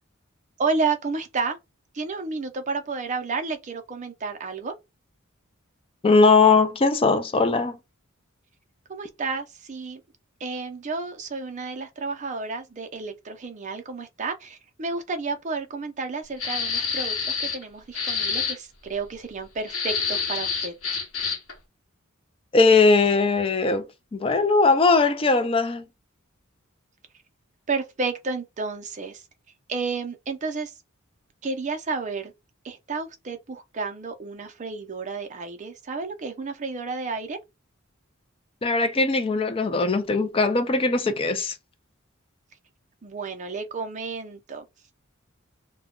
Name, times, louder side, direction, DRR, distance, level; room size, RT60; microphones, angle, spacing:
voice 1, 0.6-1.6 1.9-4.7 8.9-10.0 10.4-20.7 27.7-29.2 29.7-30.7 31.4-32.3 32.6-37.4 43.0-44.6, right 4 dB, 35° right, 0.5 m, -31 dB
voice 2, 6.0-7.8 22.5-25.8 38.6-41.6, left 3 dB, 25° left, 0.4 m, -20 dB
sound 1, 16.4-17.6 17.9-18.6 19.7-21.5, left 5 dB, 70° left, 1.0 m, -27 dB
2.2 x 2.1 x 3.6 m
head